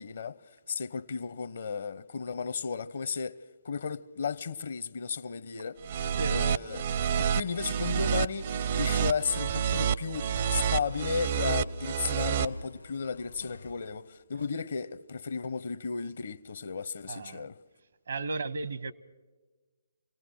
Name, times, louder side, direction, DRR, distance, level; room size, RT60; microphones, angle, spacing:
voice 1, 0.0-5.8 6.3-6.9 7.2-17.6, left 6 dB, 60° left, 0.8 m, -34 dB
sound 1, 5.8-12.4, right 8 dB, 45° right, 0.6 m, -29 dB
sound 2, 8.7-14.5 14.9-15.0 15.4-15.5, left 3 dB, 85° left, 1.1 m, -47 dB
voice 2, 17.1-17.5 18.1-18.9, right 3 dB, 65° right, 0.9 m, -34 dB
28.0 x 18.5 x 6.3 m
figure-of-eight pair, 135°, 0 cm